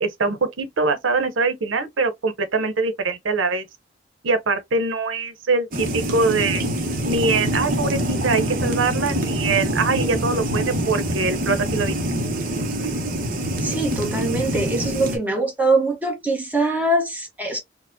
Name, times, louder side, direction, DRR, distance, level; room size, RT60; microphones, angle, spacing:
voice 1, 0.0-3.7 4.2-6.6 7.0-12.0, right 3 dB, 90° right, 0.7 m, -23 dB
sound 1, 5.7-15.2, right 1 dB, 45° right, 0.8 m, -25 dB
voice 2, 13.6-17.6, right 2 dB, 10° right, 1.0 m, -23 dB
4.5 x 2.1 x 2.5 m
head